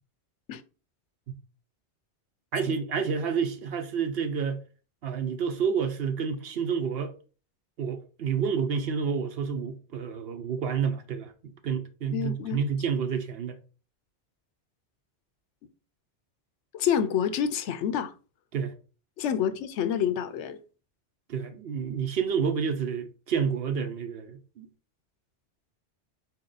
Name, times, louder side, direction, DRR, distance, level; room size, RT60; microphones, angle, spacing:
voice 1, 2.5-4.6 5.0-7.1 7.8-13.6 18.5-18.7 21.3-24.7, right 6 dB, 65° right, 0.8 m, -29 dB
voice 2, 12.1-12.6 16.7-18.1 19.2-20.6, left 8 dB, 90° left, 0.9 m, -27 dB
4.4 x 2.8 x 3.9 m
omnidirectional pair, 1.2 m